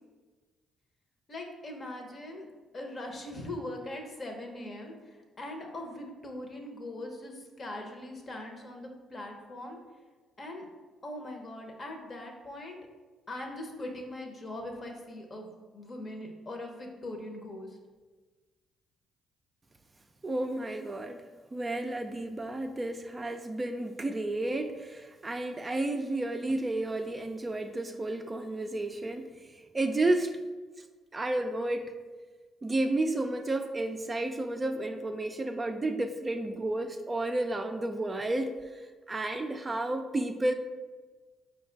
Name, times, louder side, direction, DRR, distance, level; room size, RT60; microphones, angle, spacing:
voice 1, 1.3-2.5 2.7-4.9 5.4-9.8 10.4-10.6 11.0-12.8 13.3-17.7, left 1 dB, 45° left, 2 dB, 0.8 m, -41 dB
voice 2, 20.2-30.4 31.1-31.9 32.6-40.5, right 2 dB, 25° right, 5 dB, 0.3 m, -32 dB
4.8 x 2.3 x 3.9 m, 1.3 s
supercardioid pair, 55°, 0 cm